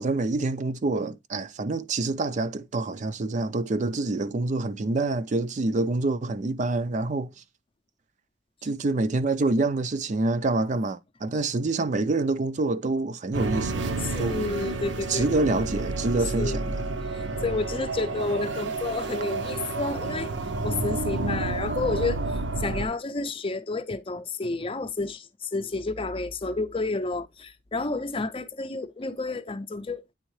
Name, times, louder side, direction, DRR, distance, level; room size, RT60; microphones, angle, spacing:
voice 1, 0.0-7.3 8.6-14.4 15.1-16.6, right 2 dB, 40° right, 0.4 m, -26 dB
sound 1, 13.3-22.9, right 3 dB, 80° right, 0.8 m, -30 dB
voice 2, 14.0-15.3 16.4-16.6 17.1-20.3 20.6-30.0, left 3 dB, 30° left, 0.6 m, -30 dB
8.9 x 3.6 x 3.1 m
head